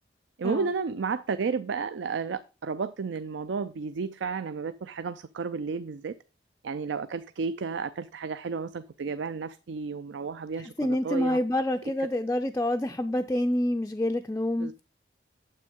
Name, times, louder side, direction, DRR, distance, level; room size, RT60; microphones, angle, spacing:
voice 1, 0.4-6.1 6.6-11.4 14.6-14.8, right 5 dB, 80° right, 0.4 m, -32 dB
voice 2, 10.8-14.7, left 1 dB, 15° left, 0.3 m, -27 dB
9.1 x 7.6 x 3.6 m
head